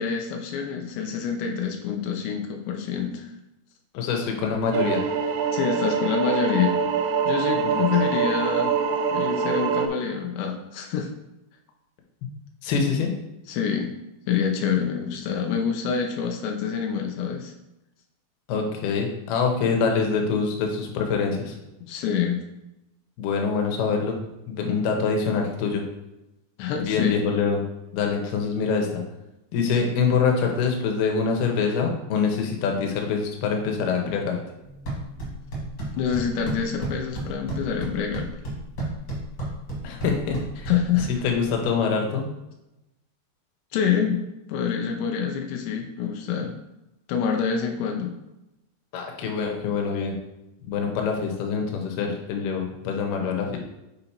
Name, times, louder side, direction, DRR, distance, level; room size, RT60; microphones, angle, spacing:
voice 1, 0.0-3.3 5.5-6.8 7.3-8.7 9.1-11.1 13.5-13.9 14.3-17.5 21.8-22.4 26.6-27.2 36.0-38.4 40.7-41.1 43.7-44.2 44.5-46.6 47.1-48.2, left 7 dB, 90° left, 2 dB, 2.9 m, -26 dB
voice 2, 3.9-5.0 7.6-7.9 12.6-13.1 18.5-21.5 23.2-24.2 24.5-25.8 26.9-27.6 27.9-28.9 29.5-34.4 39.8-40.7 41.2-42.3 48.9-50.2 50.6-53.6, left 5 dB, 75° left, 2 dB, 2.7 m, -25 dB
sound 1, 4.7-9.9, right 6 dB, 85° right, 2.2 m, -24 dB
sound 2, 34.6-41.6, right 2 dB, 55° left, 1.1 m, -34 dB
7.1 x 3.9 x 4.3 m, 0.94 s
omnidirectional pair, 5.0 m